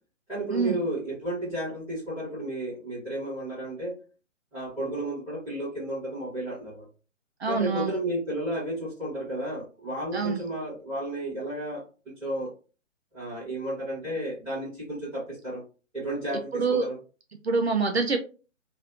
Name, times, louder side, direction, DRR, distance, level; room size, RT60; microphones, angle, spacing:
voice 1, 0.3-3.9 4.5-6.9 7.5-12.5 13.1-15.6 15.9-17.0, right 1 dB, 5° right, -12 dB, 1.6 m, -32 dB
voice 2, 7.4-7.9 10.1-10.4 16.5-16.9 17.4-18.2, right 4 dB, 55° right, 4 dB, 0.5 m, -25 dB
3.2 x 2.5 x 2.6 m, 0.34 s
figure-of-eight pair, 135°, 38 cm